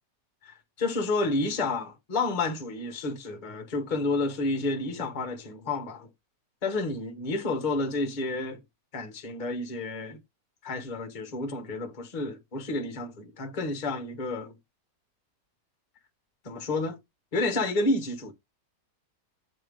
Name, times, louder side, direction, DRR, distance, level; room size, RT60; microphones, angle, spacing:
voice 1, 0.4-6.1 6.6-8.6 8.9-10.2 10.6-14.5 16.4-17.0 17.3-18.3, left 2 dB, 30° left, 1.1 m, -30 dB
7.9 x 3.6 x 5.0 m
omnidirectional pair, 1.9 m